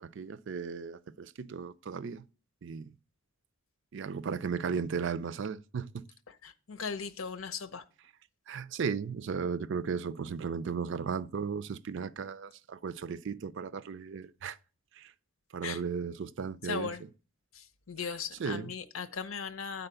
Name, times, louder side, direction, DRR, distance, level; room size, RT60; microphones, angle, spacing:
voice 1, 0.0-2.2 2.6-2.9 3.9-6.0 8.5-14.6 15.0-15.1 15.5-16.9 18.4-18.7, right 6 dB, 60° right, 0.4 m, -35 dB
voice 2, 6.4-7.8 15.6-15.8 16.6-17.0 17.5-19.9, left 5 dB, 85° left, 0.8 m, -38 dB
8.9 x 4.1 x 6.8 m
head